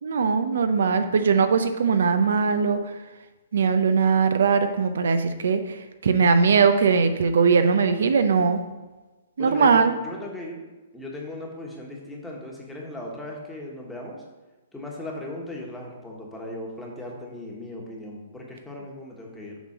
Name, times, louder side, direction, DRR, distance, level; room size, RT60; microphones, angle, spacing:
voice 1, 0.0-2.8 3.5-8.6 9.4-9.9, right 5 dB, 75° right, 9 dB, 0.6 m, -20 dB
voice 2, 9.4-10.6 10.9-14.2 14.7-19.6, left 1 dB, 5° left, -2 dB, 1.3 m, -37 dB
7.2 x 3.8 x 6.0 m, 1.2 s
hypercardioid pair, 155°, 0 cm